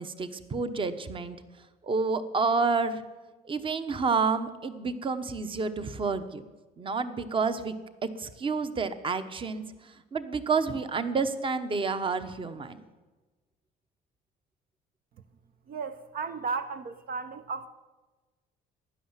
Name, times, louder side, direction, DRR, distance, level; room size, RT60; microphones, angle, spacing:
voice 1, 0.0-1.4 1.8-3.0 3.4-6.4 6.8-7.7 8.0-12.8, right 4 dB, 30° right, 11 dB, 1.1 m, -29 dB
voice 2, 15.7-17.7, right 4 dB, 60° right, 9 dB, 0.9 m, -34 dB
15.5 x 10.5 x 7.4 m, 1.2 s
cardioid pair, 110°, 17 cm